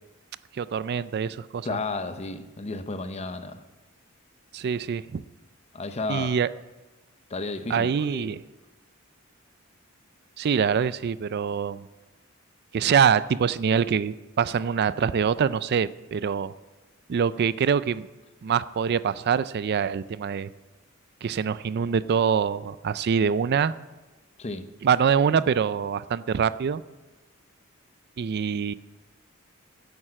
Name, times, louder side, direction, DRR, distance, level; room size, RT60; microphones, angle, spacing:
voice 1, 0.5-1.8 4.5-5.2 6.1-6.5 7.7-8.4 10.4-11.9 12.7-16.5 17.1-18.1 18.4-20.5 21.2-23.7 24.8-26.8 28.2-28.7, right 7 dB, 50° right, 16 dB, 0.4 m, -24 dB
voice 2, 1.6-3.6 5.7-6.4 7.3-8.3 24.4-24.7, left 3 dB, 30° left, 10 dB, 0.7 m, -33 dB
10.0 x 9.5 x 7.6 m, 1.2 s
head